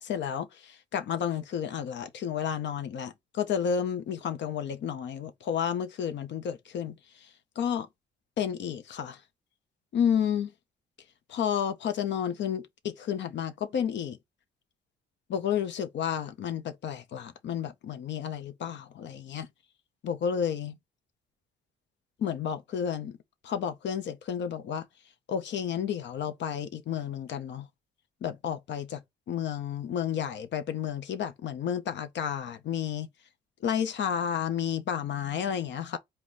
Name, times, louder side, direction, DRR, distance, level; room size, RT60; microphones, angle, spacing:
voice 1, 0.0-7.0 7.6-7.9 8.4-9.2 9.9-10.5 11.3-14.2 15.3-19.5 20.0-20.8 22.2-23.2 23.4-24.9 25.3-27.7 28.2-29.0 29.3-33.1 33.6-36.0, left 8 dB, 65° left, 0.8 m, -31 dB
4.6 x 2.2 x 4.0 m
cardioid pair, 90°, 20 cm